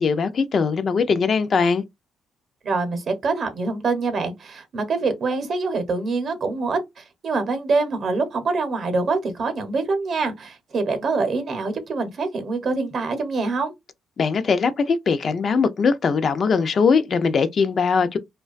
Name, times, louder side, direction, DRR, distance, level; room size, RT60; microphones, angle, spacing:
voice 1, 0.0-1.8 14.2-18.2, left 5 dB, 50° left, 0.3 m, -20 dB
voice 2, 2.6-13.7, right 3 dB, 55° right, 0.7 m, -25 dB
2.4 x 2.2 x 2.3 m
cardioid pair, 90°, 0 cm